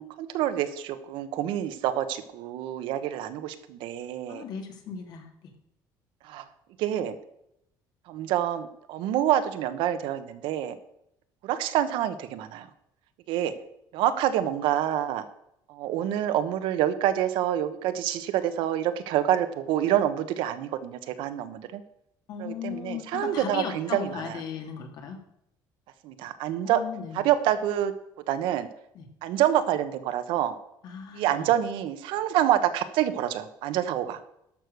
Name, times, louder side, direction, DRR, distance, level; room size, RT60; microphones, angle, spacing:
voice 1, 0.0-4.4 6.2-6.4 6.8-7.2 8.1-10.7 11.4-12.7 13.3-13.5 13.9-15.2 15.7-21.8 22.4-24.4 26.0-26.8 27.1-27.9 28.3-28.7 29.2-30.5 31.1-34.2, right 11 dB, 80° right, 10 dB, 1.1 m, -27 dB
voice 2, 4.3-5.3 22.3-25.2 26.6-27.2 28.9-29.0 30.8-31.5, left 7 dB, 55° left, 5 dB, 2.2 m, -37 dB
12.0 x 6.5 x 6.6 m, 0.78 s
cardioid pair, 170°, 8 cm